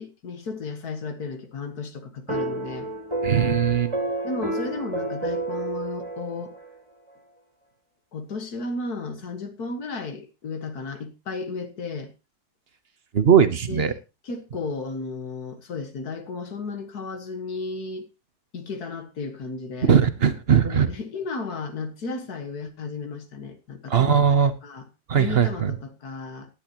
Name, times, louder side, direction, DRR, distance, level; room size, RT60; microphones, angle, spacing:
voice 1, 0.0-2.9 4.2-6.5 8.1-12.1 13.6-14.0 14.2-18.1 18.5-19.9 20.6-24.9 25.1-26.5, left 3 dB, 65° left, 2.0 m, -34 dB
sound 1, 2.3-6.7, right 2 dB, 15° right, 2.5 m, -30 dB
voice 2, 3.2-3.9 13.1-13.9 19.8-20.9 23.9-24.5 25.1-25.7, right 7 dB, 45° right, 1.0 m, -19 dB
17.0 x 10.5 x 3.0 m
omnidirectional pair, 1.8 m